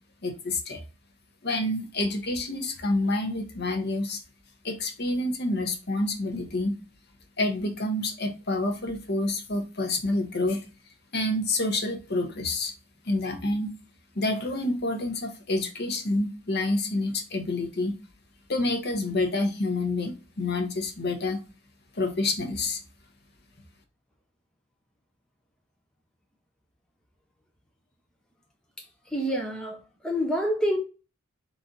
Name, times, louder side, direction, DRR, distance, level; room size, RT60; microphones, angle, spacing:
voice 1, 0.2-0.8 1.4-4.2 4.6-6.8 7.4-10.6 11.1-12.7 13.0-13.7 14.1-17.9 18.5-21.4 21.9-22.8, left 2 dB, 45° left, 0.9 m, -28 dB
voice 2, 28.8-30.8, equal, 5° left, 0.6 m, -28 dB
4.0 x 3.3 x 3.7 m
head